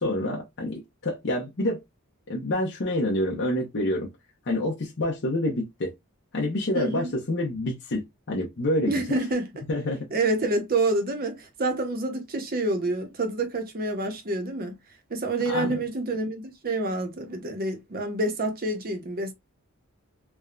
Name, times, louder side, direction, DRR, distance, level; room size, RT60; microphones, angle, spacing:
voice 1, 0.0-1.8 2.3-4.1 4.5-5.9 6.3-9.2 9.7-10.1 15.5-15.8, left 1 dB, 50° left, 0.7 m, -27 dB
voice 2, 6.7-7.1 8.9-9.6 10.1-14.8 15.1-19.3, right 2 dB, 40° right, 0.7 m, -28 dB
3.3 x 2.2 x 2.3 m
head